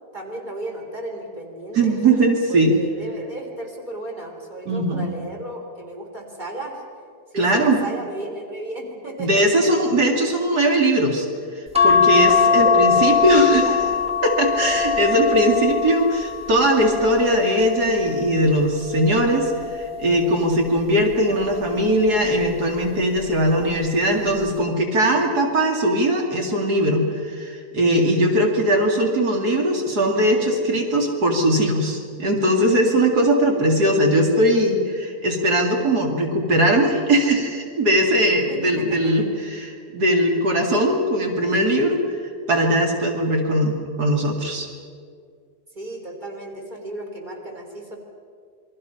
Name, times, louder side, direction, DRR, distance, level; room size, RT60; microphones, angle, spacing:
voice 1, 0.1-2.0 2.5-6.8 7.3-9.5 9.8-9.9 12.5-13.9 15.3-15.6 38.5-39.3 45.7-48.0, right 1 dB, 30° right, 0 dB, 4.0 m, -34 dB
voice 2, 1.7-2.7 4.7-5.1 7.3-7.8 9.2-11.3 11.5-13.6 14.2-42.2 42.5-44.7, right 1 dB, 85° right, 1 dB, 2.9 m, -20 dB
sound 1, 11.7-18.4 19.0-20.4 21.6-22.1 22.4-22.5, left 6 dB, 5° right, 1.3 m, -21 dB
28.0 x 23.0 x 5.7 m, 2.2 s
omnidirectional pair, 1.6 m